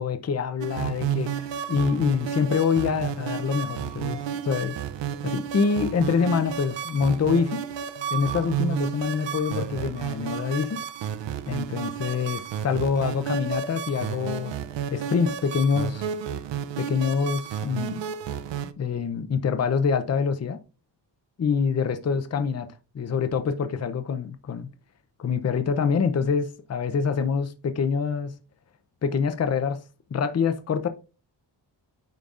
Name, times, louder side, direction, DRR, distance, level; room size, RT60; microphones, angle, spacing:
voice 1, 0.0-4.8 5.2-7.6 8.1-10.8 11.5-14.5 14.9-16.1 16.8-18.0 18.8-20.6 21.4-22.7 22.9-24.7 25.2-28.3 29.0-29.8 30.1-30.9, left 6 dB, 35° left, 0.6 m, -25 dB
sound 1, 0.6-18.7, right 8 dB, 80° right, 0.6 m, -32 dB
9.3 x 5.1 x 2.4 m
wide cardioid pair, 165°, 43 cm